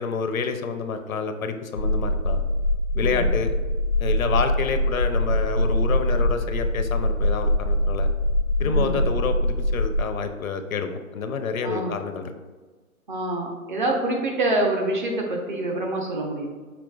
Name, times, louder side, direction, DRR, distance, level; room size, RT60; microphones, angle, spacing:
voice 1, 0.0-2.4 2.9-3.5 4.0-8.1 8.6-12.3, left 5 dB, 70° left, 7 dB, 0.6 m, -28 dB
sound 1, 1.8-10.0, left 1 dB, 20° left, 0.4 m, -23 dB
voice 2, 2.9-3.3 8.6-9.1 11.6-11.9 13.1-16.5, right 2 dB, 35° right, 0 dB, 0.7 m, -26 dB
5.1 x 4.3 x 2.3 m, 1.3 s
figure-of-eight pair, 145°, 43 cm